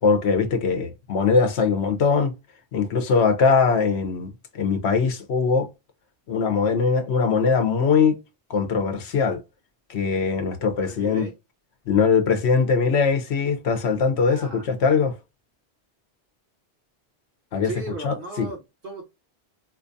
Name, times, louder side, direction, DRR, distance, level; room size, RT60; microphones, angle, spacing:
voice 1, 0.0-2.3 2.7-4.3 4.5-5.7 6.3-8.2 8.5-9.4 9.9-11.3 11.9-15.1 17.5-17.7 18.0-18.5, left 5 dB, 80° left, 1.0 m, -21 dB
voice 2, 10.8-11.3 14.3-14.7 17.6-19.0, right 2 dB, 55° right, 1.5 m, -36 dB
4.3 x 2.3 x 2.6 m
omnidirectional pair, 1.1 m